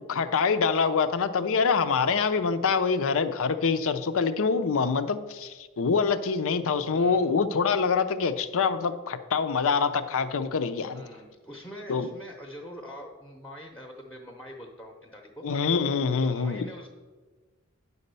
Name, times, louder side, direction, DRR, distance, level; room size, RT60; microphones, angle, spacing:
voice 1, 0.1-11.0 11.9-12.1 15.4-16.7, left 5 dB, 65° left, 11 dB, 0.6 m, -25 dB
voice 2, 6.9-7.2 10.9-15.4 16.2-16.9, equal, 5° left, 1 dB, 0.8 m, -44 dB
9.9 x 4.2 x 6.8 m, 1.3 s
head